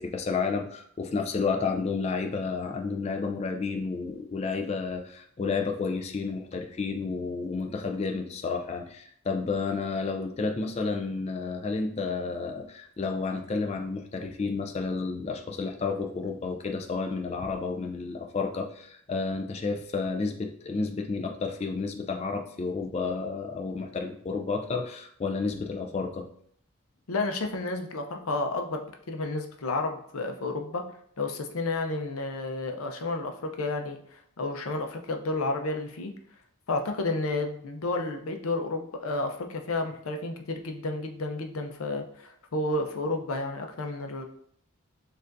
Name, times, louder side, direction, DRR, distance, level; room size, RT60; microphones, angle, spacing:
voice 1, 0.0-26.3, left 4 dB, 30° left, 3 dB, 0.3 m, -31 dB
voice 2, 27.1-30.8 31.2-36.1 36.7-44.2, left 2 dB, 75° left, 4 dB, 0.6 m, -31 dB
6.7 x 2.5 x 2.5 m, 0.63 s
head